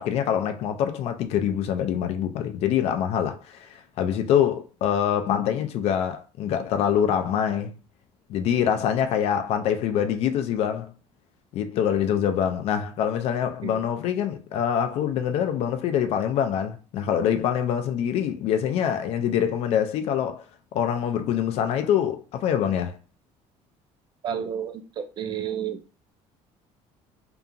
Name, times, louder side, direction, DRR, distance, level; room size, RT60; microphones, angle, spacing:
voice 1, 0.0-7.7 8.3-10.9 11.5-20.4 20.7-23.0, left 9 dB, 55° left, 0.4 m, -25 dB
voice 2, 24.2-25.8, right 8 dB, 35° right, 0.4 m, -31 dB
2.8 x 2.4 x 2.5 m
cardioid pair, 160°, 12 cm